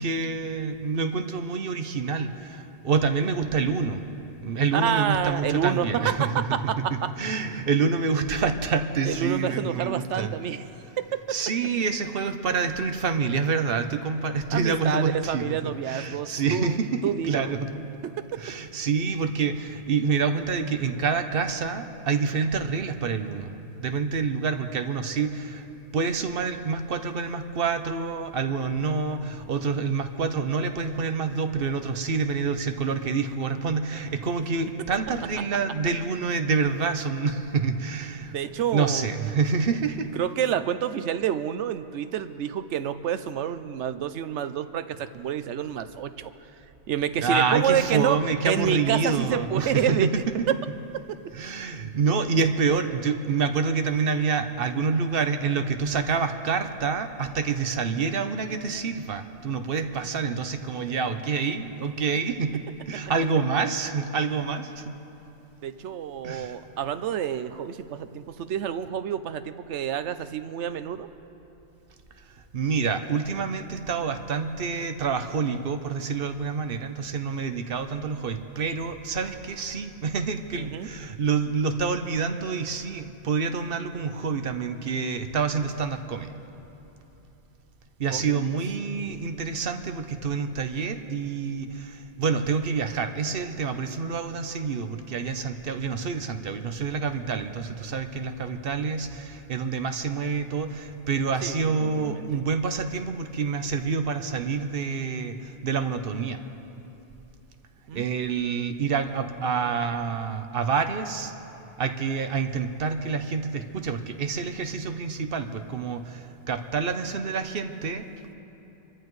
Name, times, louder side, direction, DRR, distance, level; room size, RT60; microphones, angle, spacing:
voice 1, 0.0-4.0 4.4-6.6 7.2-10.3 11.3-15.4 15.9-17.9 18.4-23.5 23.8-25.6 25.9-38.3 38.7-40.1 47.2-50.2 51.3-64.9 66.2-66.6 72.5-86.3 88.0-106.4 107.9-111.3 111.8-118.0, right 5 dB, 55° right, 8 dB, 1.0 m, -27 dB
voice 2, 4.7-7.1 7.4-7.5 9.1-10.6 11.0-11.1 14.5-17.6 18.0-18.2 38.3-39.1 40.2-46.3 46.9-50.6 65.6-71.1 80.5-80.9 88.1-88.4 98.7-98.8 101.4-102.3 107.9-108.2, right 9 dB, 90° right, 12 dB, 0.9 m, -28 dB
25.5 x 14.0 x 3.2 m, 3.0 s
omnidirectional pair, 1.2 m